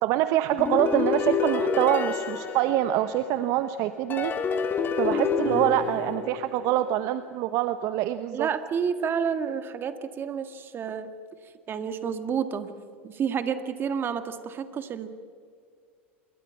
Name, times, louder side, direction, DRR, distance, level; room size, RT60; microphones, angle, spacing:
voice 1, 0.0-4.3 5.0-8.5, right 12 dB, 55° right, 11 dB, 1.0 m, -25 dB
sound 1, 0.6-3.4 4.1-6.9, left 5 dB, 30° left, 2.3 m, -28 dB
voice 2, 8.3-11.1 11.7-12.7 13.0-15.1, right 7 dB, 35° right, 9 dB, 2.0 m, -30 dB
27.0 x 22.0 x 5.8 m, 2.1 s
hypercardioid pair, 95°, 7 cm